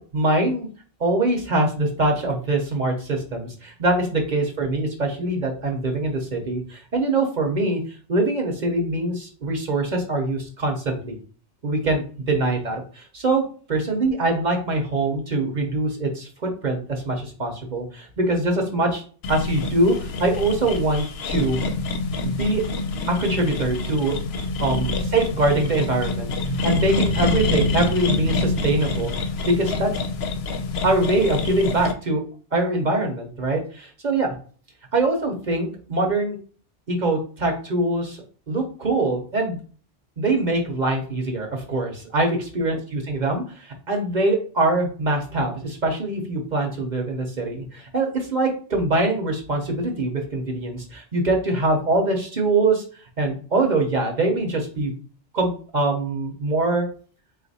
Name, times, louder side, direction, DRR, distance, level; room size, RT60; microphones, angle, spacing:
voice 1, 0.1-0.7 1.0-7.8 8.1-11.2 11.6-19.0 19.3-21.6 22.2-22.6 23.1-24.1 24.6-26.3 26.6-29.1 29.4-29.9 30.8-32.2 32.5-34.3 34.9-36.4 36.9-39.6 40.2-52.8 53.2-54.9 55.3-56.9, right 2 dB, 45° right, 2 dB, 0.9 m, -23 dB
sound 1, 19.2-31.9, left 3 dB, 70° left, 0.8 m, -26 dB
3.9 x 2.4 x 4.0 m, 0.41 s
omnidirectional pair, 1.1 m